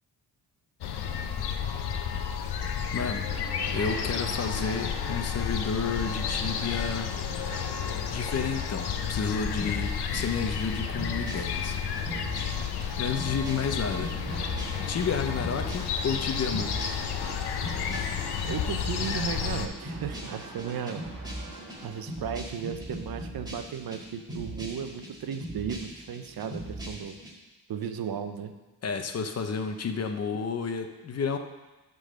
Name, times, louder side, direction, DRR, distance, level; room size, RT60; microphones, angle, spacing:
sound 1, 0.8-19.7, left 7 dB, 75° left, 0.8 m, -31 dB
voice 1, 2.9-3.3 3.7-7.1 8.1-11.8 13.0-14.2 14.9-16.8 28.8-31.4, left 5 dB, 40° left, 6 dB, 0.8 m, -31 dB
sound 2, 3.3-22.0, right 3 dB, 35° right, 1.9 m, -45 dB
sound 3, 9.6-27.3, right 1 dB, 10° right, 1.9 m, -40 dB
voice 2, 18.5-21.0 21.8-27.2 27.7-28.5, right 8 dB, 65° right, 8 dB, 0.8 m, -35 dB
11.5 x 3.9 x 6.5 m, 1.1 s
cardioid pair, 130°, 39 cm